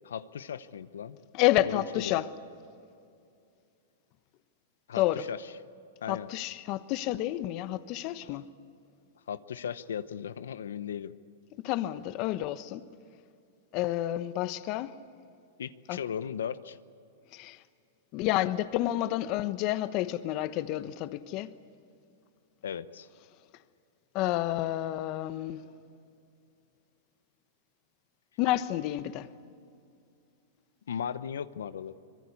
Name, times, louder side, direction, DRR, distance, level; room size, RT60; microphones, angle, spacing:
voice 1, 0.0-1.2 1.6-2.2 4.9-5.5 6.0-6.3 8.2-8.4 9.3-11.1 15.6-16.8 22.6-23.1 30.9-31.9, left 8 dB, 85° left, 0.8 m, -37 dB
voice 2, 1.3-2.3 4.9-5.2 6.1-8.5 11.6-12.8 13.7-14.9 15.9-16.0 17.3-17.6 18.1-21.5 24.1-25.6 28.4-29.3, left 14 dB, 45° left, 1.1 m, -29 dB
24.5 x 22.0 x 8.4 m
hypercardioid pair, 125°, 0 cm